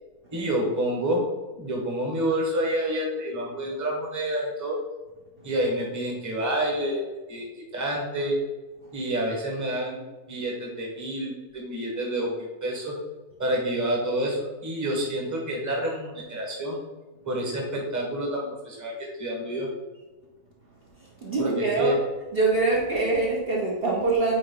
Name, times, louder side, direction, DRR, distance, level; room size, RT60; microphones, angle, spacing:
voice 1, 0.3-1.2 1.5-4.8 5.4-7.0 7.3-7.4 7.7-8.4 8.9-10.0 10.3-12.9 13.4-16.8 17.2-19.7 21.4-22.0, right 1 dB, 10° right, -1 dB, 1.2 m, -28 dB
voice 2, 21.2-22.0 22.3-24.4, right 3 dB, 40° right, -3 dB, 1.2 m, -24 dB
8.6 x 3.4 x 3.8 m, 1.2 s
omnidirectional pair, 1.7 m